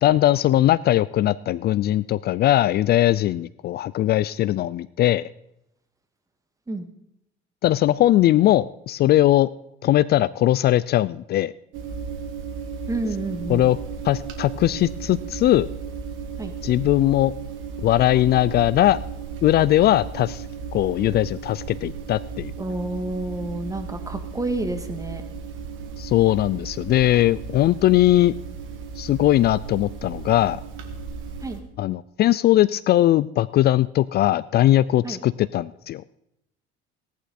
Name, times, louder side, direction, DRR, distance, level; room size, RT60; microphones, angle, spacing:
voice 1, 0.0-5.3 7.6-9.5 9.8-11.5 13.5-13.8 14.0-15.7 16.6-17.3 17.8-19.0 19.4-20.4 20.7-22.5 26.0-28.3 29.0-30.6 31.8-36.0, left 14 dB, 50° left, 19 dB, 0.4 m, -20 dB
sound 1, 11.7-31.6, right 5 dB, 70° right, 2.3 m, -35 dB
voice 2, 12.9-13.7 16.4-16.5 22.6-25.2 31.4-31.6 35.0-35.2, right 2 dB, 15° right, 6 dB, 1.8 m, -29 dB
17.0 x 11.5 x 4.2 m, 0.81 s
cardioid pair, 105°, 21 cm